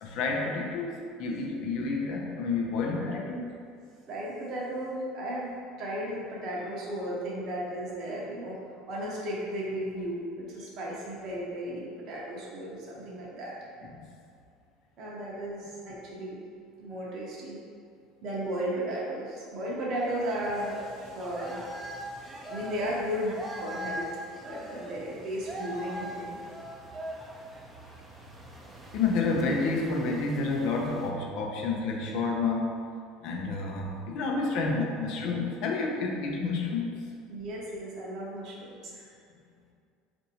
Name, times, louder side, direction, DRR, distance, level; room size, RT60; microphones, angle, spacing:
voice 1, 0.0-3.5 28.9-32.8 33.2-37.0, left 3 dB, 65° left, 0 dB, 0.5 m, -29 dB
voice 2, 4.1-5.5 5.8-8.6 8.9-13.6 15.0-16.4 16.8-17.6 18.2-26.4 37.3-39.1, right 1 dB, 55° right, -4 dB, 0.7 m, -35 dB
sound 1, 19.9-31.1, equal, 15° right, 0.5 m, -41 dB
4.2 x 2.6 x 2.8 m, 2.3 s
hypercardioid pair, 80°, 0 cm